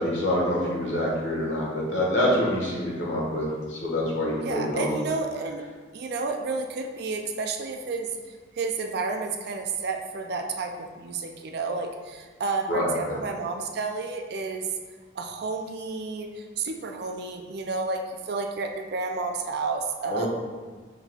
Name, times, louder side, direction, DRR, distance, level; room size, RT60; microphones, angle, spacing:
voice 1, 0.0-4.9 12.7-13.1 20.1-20.3, left 1 dB, 70° left, -4 dB, 1.3 m, -26 dB
voice 2, 4.4-5.6 5.9-14.7 15.2-20.3, right 3 dB, 55° right, 4 dB, 0.4 m, -31 dB
5.6 x 3.6 x 2.3 m, 1.4 s
head